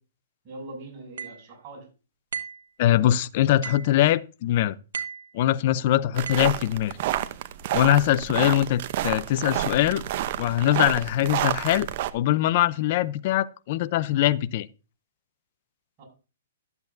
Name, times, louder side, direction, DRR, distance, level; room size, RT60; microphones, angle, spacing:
voice 1, 0.4-1.9 16.0-16.1, right 2 dB, 35° right, 6.3 m, -41 dB
sound 1, 1.2-1.4 2.3-2.6 3.6-3.9 4.9-5.3 6.3-6.6, right 6 dB, 80° right, 1.0 m, -35 dB
voice 2, 2.8-4.8 5.3-6.9 7.7-10.0 10.4-11.9 12.1-14.7, left 13 dB, 50° left, 0.5 m, -22 dB
sound 2, 6.1-12.1, right 13 dB, 50° right, 0.7 m, -29 dB
12.0 x 8.1 x 2.6 m
hypercardioid pair, 135°, 0 cm